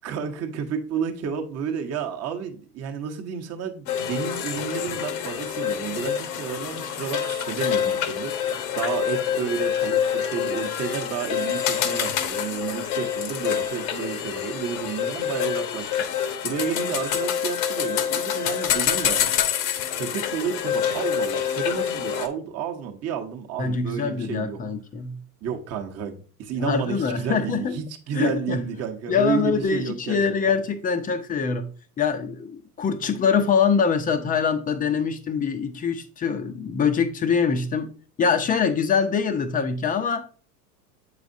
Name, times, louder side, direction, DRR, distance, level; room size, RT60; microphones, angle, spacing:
voice 1, 0.0-8.5 8.8-15.9 16.4-19.3 19.9-24.6 25.4-30.2, right 7 dB, 30° right, 1.0 m, -31 dB
sound 1, 3.9-22.3, left 9 dB, 55° left, 0.9 m, -26 dB
voice 2, 23.6-25.2 26.6-27.8 28.1-28.6 29.1-31.7 32.0-37.9 38.2-40.2, left 6 dB, 20° left, 0.5 m, -24 dB
7.2 x 4.9 x 2.6 m
hypercardioid pair, 105°, 49 cm